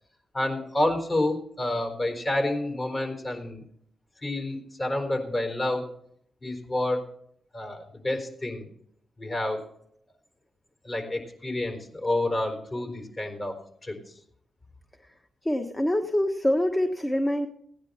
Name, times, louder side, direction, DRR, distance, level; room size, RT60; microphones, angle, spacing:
voice 1, 0.3-3.6 4.2-5.9 6.4-7.0 7.5-8.7 9.2-9.6 10.8-13.6 13.8-14.2, left 1 dB, 40° left, 4 dB, 4.3 m, -29 dB
voice 2, 15.4-17.5, left 1 dB, 20° left, 4 dB, 1.3 m, -25 dB
17.0 x 10.0 x 4.3 m, 0.67 s
supercardioid pair, 55°, 0 cm